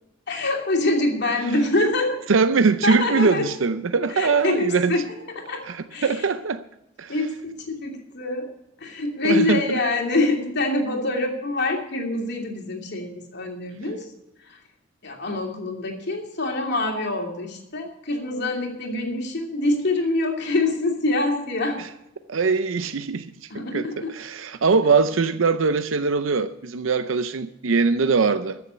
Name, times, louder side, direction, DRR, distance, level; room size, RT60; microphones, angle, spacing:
voice 1, 0.3-2.2 2.8-3.5 4.1-5.0 5.4-5.6 5.9-6.2 7.1-8.5 8.8-14.1 14.5-14.6 15.0-21.8 23.5-24.1, left 2 dB, 60° left, 2.7 m, -25 dB
voice 2, 2.3-5.0 5.7-6.6 7.0-7.1 9.2-9.8 21.8-21.9 22.3-23.3 23.7-28.6, right 4 dB, 85° right, 0.6 m, -22 dB
14.5 x 7.0 x 8.2 m
head